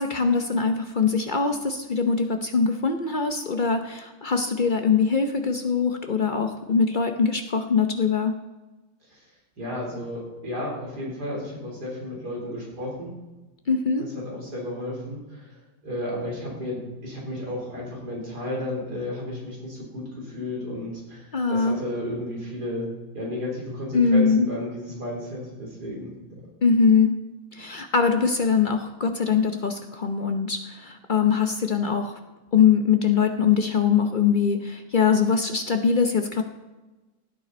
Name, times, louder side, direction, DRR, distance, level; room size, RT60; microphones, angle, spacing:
voice 1, 0.0-8.4 13.7-14.1 21.3-21.8 23.9-24.5 26.6-27.2 27.5-32.2 32.5-36.4, left 5 dB, 60° left, 5 dB, 0.5 m, -22 dB
voice 2, 9.6-13.1 14.0-15.6 15.8-22.9 23.1-26.1, left 1 dB, 55° right, -3 dB, 4.6 m, -33 dB
17.0 x 9.5 x 4.3 m, 1.1 s
omnidirectional pair, 2.1 m